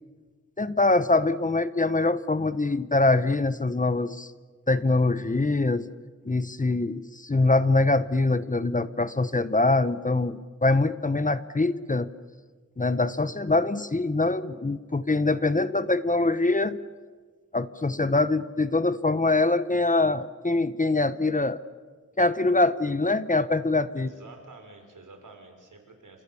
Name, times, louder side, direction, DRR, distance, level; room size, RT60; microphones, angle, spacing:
voice 1, 0.6-4.3 4.7-5.9 6.2-12.1 12.8-16.8 17.5-21.6 22.2-24.1, left 2 dB, 25° left, 14 dB, 1.0 m, -24 dB
voice 2, 24.0-26.2, right 3 dB, 85° right, 4 dB, 5.6 m, -49 dB
29.5 x 26.5 x 7.1 m, 1.4 s
wide cardioid pair, 95°, 30 cm